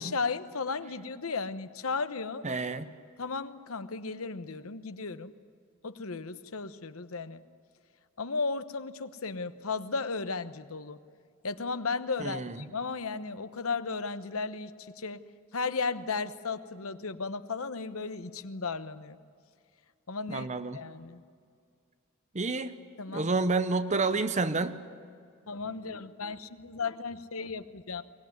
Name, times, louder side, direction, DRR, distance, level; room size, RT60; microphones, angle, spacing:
voice 1, 0.0-2.4 3.2-5.3 5.8-7.4 8.2-11.0 11.4-15.2 15.5-19.2 20.1-20.5 20.7-21.2 23.0-23.3 25.5-28.0, left 4 dB, 80° left, 11 dB, 1.1 m, -35 dB
voice 2, 2.4-2.9 12.2-12.7 20.3-20.8 22.3-22.7 23.1-24.8, right 3 dB, 35° right, 12 dB, 0.9 m, -29 dB
23.0 x 19.0 x 9.5 m, 2.2 s
head